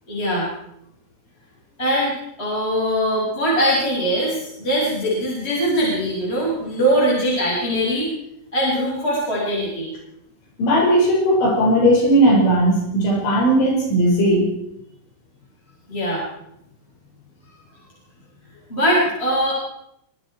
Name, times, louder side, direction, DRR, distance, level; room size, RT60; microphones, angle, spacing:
voice 1, 0.1-0.5 1.8-8.1 8.5-9.9 15.9-16.2 18.7-19.5, equal, 10° left, -6 dB, 6.8 m, -21 dB
voice 2, 10.6-14.5, right 1 dB, 70° left, -1 dB, 8.0 m, -17 dB
26.0 x 22.5 x 4.7 m, 0.78 s
omnidirectional pair, 5.7 m